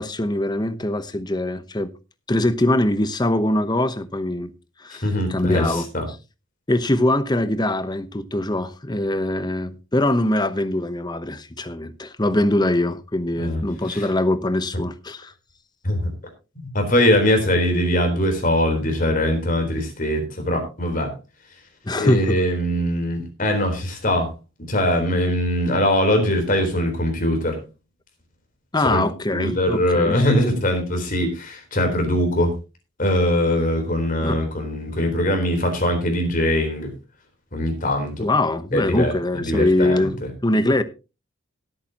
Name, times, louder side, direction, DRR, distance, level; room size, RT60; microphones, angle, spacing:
voice 1, 0.0-1.9 2.3-4.5 4.8-5.9 6.7-15.3 21.8-22.4 28.7-30.2 34.2-34.4 38.2-40.8, left 1 dB, 20° left, 0.9 m, -22 dB
voice 2, 5.0-6.1 13.4-13.6 13.9-14.1 15.8-16.1 16.7-21.1 22.0-24.3 24.7-27.6 28.8-29.0 29.3-32.5 33.0-36.9 37.5-38.3 38.7-40.3, left 1 dB, 40° left, 3.9 m, -22 dB
18.0 x 8.8 x 2.9 m
head